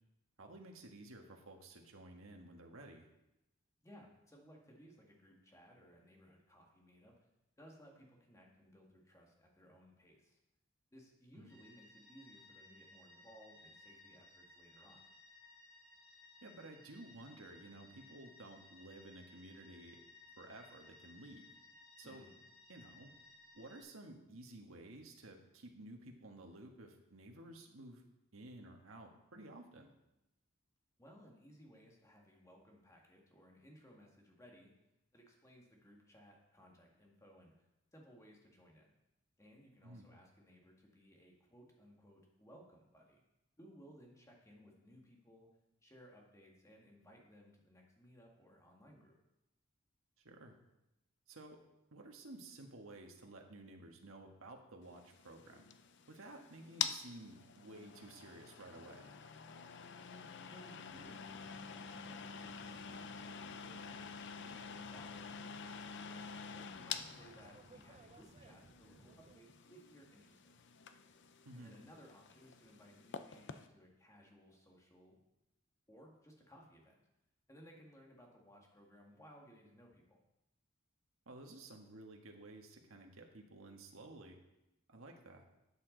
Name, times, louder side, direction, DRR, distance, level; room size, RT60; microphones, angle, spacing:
voice 1, 0.4-3.1 11.3-11.5 16.4-20.0 20.4-21.5 22.0-22.3 22.7-23.1 23.5-28.0 28.3-29.9 39.8-40.1 50.2-50.6 51.3-51.6 51.9-55.7 56.1-59.1 71.4-71.7 81.2-84.4 84.9-85.4, right 2 dB, 80° right, 3 dB, 1.5 m, -53 dB
voice 2, 3.8-7.2 7.6-10.4 10.9-15.1 22.0-22.4 31.0-34.7 35.1-37.7 37.9-39.0 39.4-43.2 43.6-45.5 45.8-49.2 60.0-64.1 64.4-65.4 66.1-70.6 71.5-75.2 75.9-77.0 77.5-80.2, equal, 15° left, 0 dB, 1.9 m, -61 dB
sound 1, 11.5-23.8, left 2 dB, 85° left, 3.5 m, -61 dB
sound 2, 55.0-73.7, left 7 dB, 60° left, 0.6 m, -48 dB
sound 3, 60.9-69.4, right 3 dB, 35° right, 0.5 m, -63 dB
13.0 x 8.4 x 3.9 m, 0.91 s
head